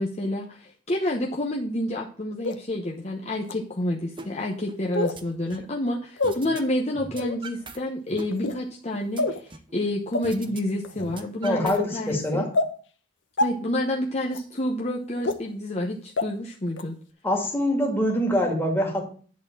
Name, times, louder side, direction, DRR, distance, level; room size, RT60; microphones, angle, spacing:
voice 1, 0.0-12.5 13.4-17.0, left 1 dB, 35° left, -1 dB, 0.9 m, -29 dB
sound 1, 2.4-2.6 3.4-3.5 4.9-5.2 6.2-6.4 7.1-7.4 8.3-8.6 9.2-9.4 10.1-10.2 10.8-11.1 11.8-11.9 12.5-12.7 13.4-13.5 14.3-14.4 15.2-15.4 16.2-16.3 16.8-16.9, left 2 dB, 65° left, 0.9 m, -25 dB
sound 2, 4.2-4.3 4.7-5.7 6.2-6.6 6.9-7.8 8.1-9.7 10.2-10.6 10.9-12.2, right 3 dB, 25° right, 0.8 m, -41 dB
voice 2, 11.4-12.5 17.2-19.0, left 1 dB, 10° left, -1 dB, 2.1 m, -24 dB
10.5 x 4.3 x 7.1 m, 0.43 s
head